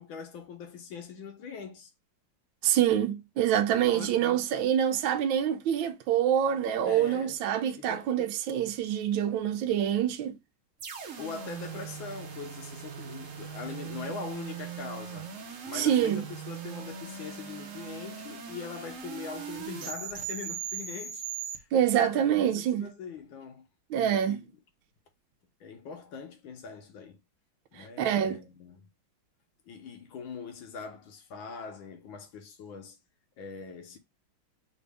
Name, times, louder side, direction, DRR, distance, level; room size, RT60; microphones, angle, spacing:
voice 1, 0.0-1.9 3.8-4.2 6.8-7.4 7.8-8.1 11.2-15.3 15.6-21.2 21.5-21.7 21.9-23.7 24.0-24.4 25.6-27.2 27.7-28.9 29.7-33.0 33.4-34.0, left 5 dB, 75° left, 1.7 m, -42 dB
voice 2, 2.6-10.3 15.7-16.2 21.7-22.9 23.9-24.4 27.8-28.4, right 10 dB, 75° right, 1.3 m, -26 dB
sound 1, 10.8-21.6, right 8 dB, 55° right, 0.9 m, -40 dB
5.1 x 2.6 x 3.3 m
omnidirectional pair, 2.3 m